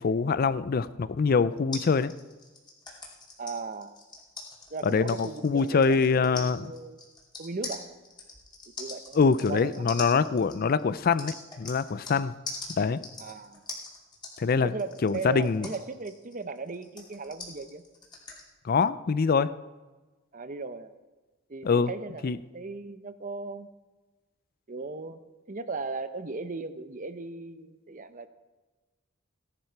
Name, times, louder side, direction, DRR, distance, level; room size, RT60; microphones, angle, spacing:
voice 1, 0.0-2.1 4.8-6.7 9.1-12.3 12.8-13.0 14.4-14.7 15.0-15.7 18.6-19.5 21.6-21.9 22.2-22.4, left 5 dB, 45° left, 16 dB, 0.4 m, -24 dB
sound 1, 1.7-12.2 12.5-18.4, left 3 dB, 20° left, 2.5 m, -42 dB
voice 2, 3.4-4.0 4.7-7.0 7.4-7.8 8.8-9.2 9.5-9.8 13.2-13.6 14.6-17.8 20.3-20.9 21.5-23.7 24.7-25.2 25.5-28.3, right 3 dB, 40° right, 11 dB, 0.7 m, -37 dB
16.0 x 11.5 x 4.6 m, 1.2 s
head